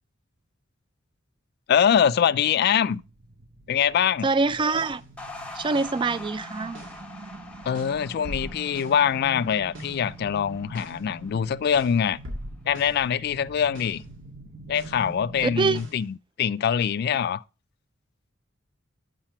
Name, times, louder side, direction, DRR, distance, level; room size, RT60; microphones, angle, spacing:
voice 1, 1.7-3.0 3.7-4.3 7.6-12.2 12.7-14.0 14.7-17.4, left 8 dB, 55° left, 0.3 m, -23 dB
sound 1, 2.6-15.9, right 2 dB, 50° right, 0.9 m, -44 dB
voice 2, 4.2-5.0 5.6-6.8 15.6-15.8, right 4 dB, 25° right, 0.3 m, -24 dB
sound 2, 4.7-5.1 5.7-6.1 6.7-7.1 7.7-9.1 9.7-10.1 10.7-11.1 11.7-13.1 13.7-14.1 14.7-15.1 15.7-16.1, equal, 80° right, 2.1 m, -41 dB
sound 3, 5.2-11.7, left 2 dB, 5° left, 0.9 m, -44 dB
7.4 x 4.9 x 4.4 m
head